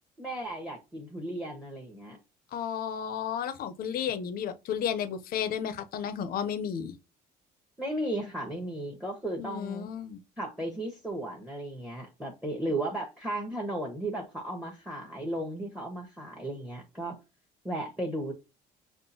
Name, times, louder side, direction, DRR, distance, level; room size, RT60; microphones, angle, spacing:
voice 1, 0.2-2.2 7.8-9.9 10.4-17.1 17.6-18.3, right 1 dB, 5° right, 1.1 m, -35 dB
voice 2, 2.5-7.0 9.4-10.2, left 8 dB, 60° left, 0.6 m, -33 dB
5.5 x 2.4 x 2.7 m
cardioid pair, 110°, 17 cm